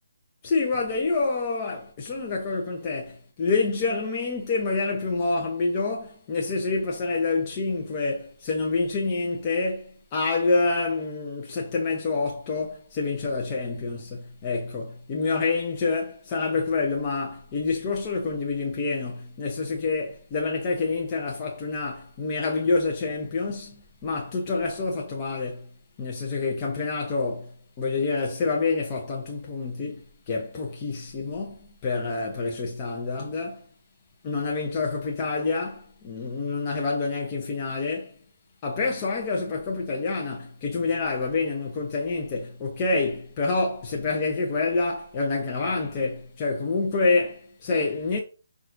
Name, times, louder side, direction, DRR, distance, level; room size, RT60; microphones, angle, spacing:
voice 1, 0.4-25.7 26.0-33.6 34.2-38.2 38.6-48.2, left 3 dB, 30° left, 0.6 m, -27 dB
5.7 x 2.4 x 2.5 m
figure-of-eight pair, 150°, 0 cm